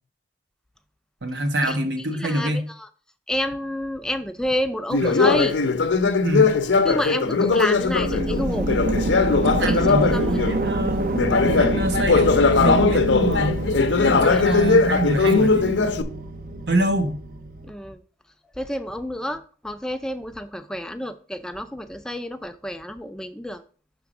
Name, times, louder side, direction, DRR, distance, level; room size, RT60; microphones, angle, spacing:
voice 1, 1.2-2.7 5.0-5.1 6.2-6.5 9.4-11.1 11.4-13.6 14.0-15.9 16.7-17.2, right 1 dB, 75° right, 1.1 m, -25 dB
voice 2, 2.1-2.5 3.3-5.6 6.8-8.7 9.6-10.3 14.2-14.5 17.7-18.0 18.6-23.6, left 1 dB, 5° left, 0.4 m, -29 dB
Conversation, 4.9-10.6 11.1-16.0, left 4 dB, 90° left, 0.6 m, -20 dB
sound 1, 7.8-17.7, right 1 dB, 50° right, 0.6 m, -27 dB
6.1 x 3.6 x 5.9 m
head